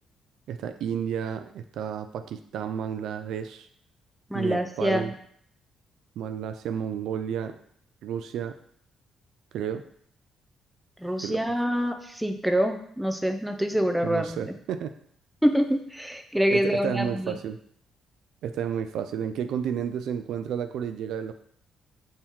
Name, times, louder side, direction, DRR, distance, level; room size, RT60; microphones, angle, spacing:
voice 1, 0.5-3.7 4.3-5.1 6.2-7.5 8.0-8.5 9.5-9.8 11.2-11.4 14.0-14.9 16.5-17.6 18.4-21.3, right 8 dB, 80° right, 9 dB, 0.3 m, -31 dB
voice 2, 4.3-5.1 11.0-14.4 15.4-17.3, equal, 5° right, 6 dB, 0.5 m, -26 dB
4.3 x 2.9 x 3.6 m, 0.65 s
cardioid pair, 90°, 0 cm